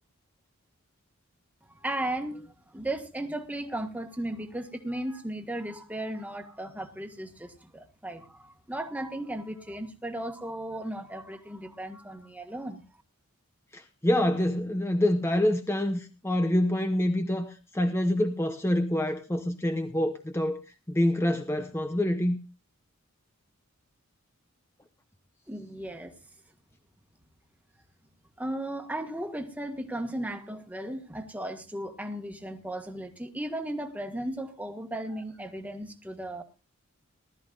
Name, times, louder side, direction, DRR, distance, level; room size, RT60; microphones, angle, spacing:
voice 1, 1.8-12.8 25.5-26.1 28.4-36.4, right 1 dB, 5° right, 1.6 m, -36 dB
voice 2, 13.7-20.6 20.9-22.4, left 1 dB, 10° left, 0.8 m, -26 dB
19.5 x 13.5 x 2.5 m
head